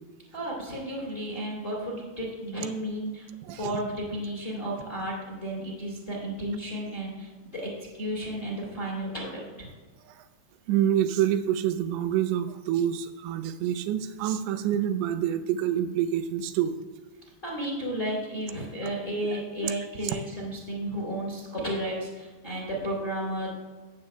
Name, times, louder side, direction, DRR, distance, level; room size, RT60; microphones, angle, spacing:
voice 1, 0.3-3.3 3.5-9.7 17.4-23.5, right 1 dB, 20° left, -4 dB, 2.5 m, -33 dB
voice 2, 3.4-3.8 10.7-16.7 19.6-19.8 20.0-20.2, right 10 dB, 80° right, 10 dB, 2.9 m, -27 dB
16.5 x 8.2 x 2.2 m, 1.4 s
omnidirectional pair, 5.3 m